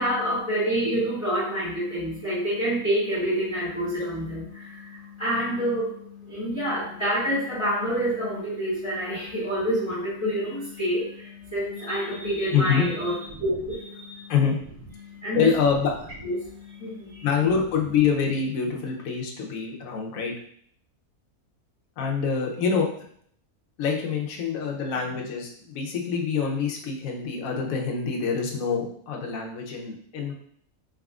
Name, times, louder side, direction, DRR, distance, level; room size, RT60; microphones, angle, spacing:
voice 1, 0.0-14.3 15.0-15.5 16.2-17.3, equal, 20° left, -10 dB, 1.2 m, -28 dB
voice 2, 12.5-12.9 14.3-14.6 15.3-15.9 17.2-20.3 22.0-22.9 23.8-30.3, left 6 dB, 65° left, 0 dB, 1.1 m, -25 dB
4.0 x 3.6 x 2.4 m, 0.64 s
omnidirectional pair, 1.6 m